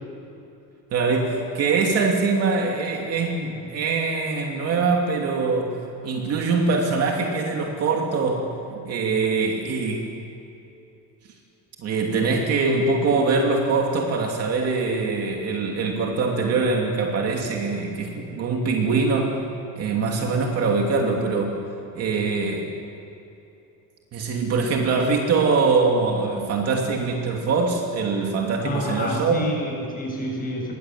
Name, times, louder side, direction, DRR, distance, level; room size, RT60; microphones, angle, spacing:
voice 1, 0.9-10.1 11.8-19.3 19.8-21.6 21.9-22.7 24.1-29.5, right 4 dB, 40° right, 1 dB, 2.8 m, -23 dB
voice 2, 28.6-30.7, left 1 dB, 20° left, -1 dB, 7.1 m, -29 dB
27.5 x 22.5 x 7.6 m, 2.8 s
cardioid pair, 175°, 40 cm